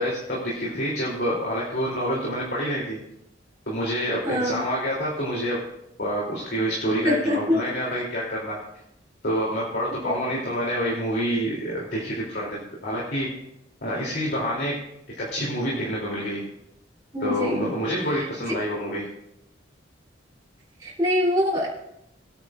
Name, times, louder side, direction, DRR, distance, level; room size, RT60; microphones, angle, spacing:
voice 1, 0.0-3.0 3.7-5.6 6.0-8.6 9.2-13.3 13.8-14.7 15.2-16.4 17.2-19.1, equal, 55° left, -5 dB, 3.1 m, -27 dB
voice 2, 4.2-4.6 7.0-7.6 10.0-10.3 17.1-17.7 20.8-21.7, left 1 dB, 20° right, -6 dB, 3.3 m, -24 dB
22.0 x 9.4 x 2.5 m, 0.81 s
head